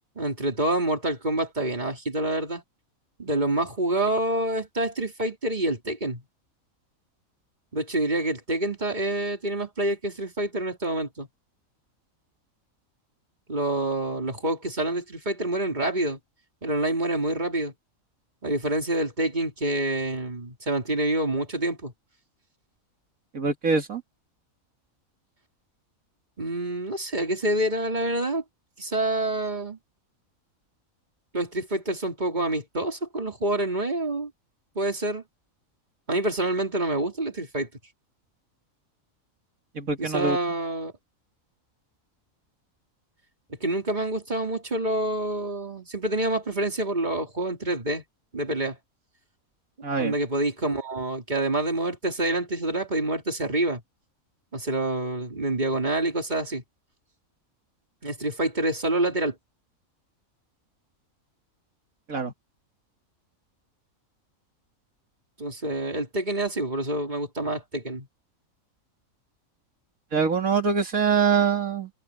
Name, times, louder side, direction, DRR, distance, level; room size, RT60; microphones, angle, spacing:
voice 1, 0.2-2.6 3.2-6.2 7.7-11.3 13.5-16.2 16.6-17.7 18.4-21.9 26.4-28.4 28.8-29.8 31.3-34.3 34.8-35.2 36.1-37.7 40.0-40.9 43.6-48.0 48.3-48.8 50.0-53.8 54.5-56.6 58.0-59.3 65.4-68.1, right 1 dB, 30° right, 3.6 m, -27 dB
voice 2, 23.3-24.0 39.8-40.4 49.8-50.1 62.1-62.3 70.1-71.9, right 5 dB, 80° right, 2.5 m, -24 dB
omnidirectional pair, 1.4 m